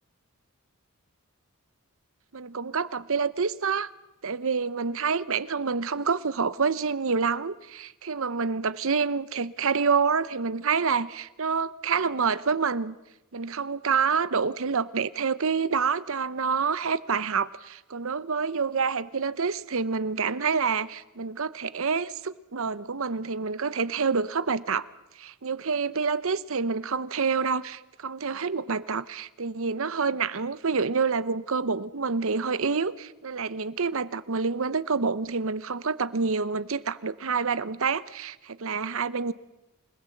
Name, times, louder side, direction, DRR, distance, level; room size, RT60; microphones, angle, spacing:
voice 1, 2.3-3.9 4.2-13.0 13.3-24.8 25.2-39.3, right 5 dB, 65° right, 0.8 m, -27 dB
28.0 x 19.0 x 7.8 m
head